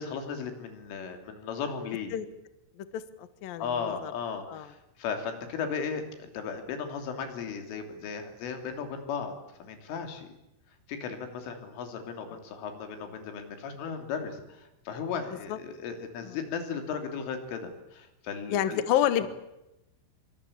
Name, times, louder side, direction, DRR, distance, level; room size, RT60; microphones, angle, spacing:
voice 1, 0.0-2.2 3.6-10.4 10.9-18.8 19.2-19.3, left 6 dB, 85° left, 5 dB, 5.6 m, -36 dB
voice 2, 18.5-19.3, left 11 dB, 65° left, 12 dB, 2.4 m, -27 dB
25.5 x 24.5 x 8.6 m, 0.92 s
omnidirectional pair, 5.6 m